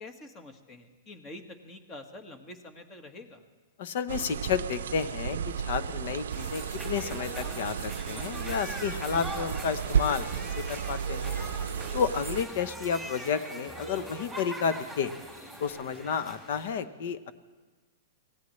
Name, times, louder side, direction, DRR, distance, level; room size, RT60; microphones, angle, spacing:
voice 1, 0.0-3.4 13.9-14.2, left 2 dB, 25° left, 6 dB, 1.7 m, -46 dB
voice 2, 3.8-5.4 5.6-11.4 11.9-15.1 15.6-17.3, left 7 dB, 60° left, 14 dB, 0.9 m, -31 dB
sound 1, 4.1-12.4, right 8 dB, 80° right, 0.5 m, -33 dB
sound 2, 5.4-15.7, right 1 dB, 85° left, 5.4 m, -51 dB
sound 3, 6.3-16.7, right 1 dB, ahead, 3.3 m, -42 dB
24.0 x 16.5 x 3.2 m, 1.3 s
hypercardioid pair, 130°, 0 cm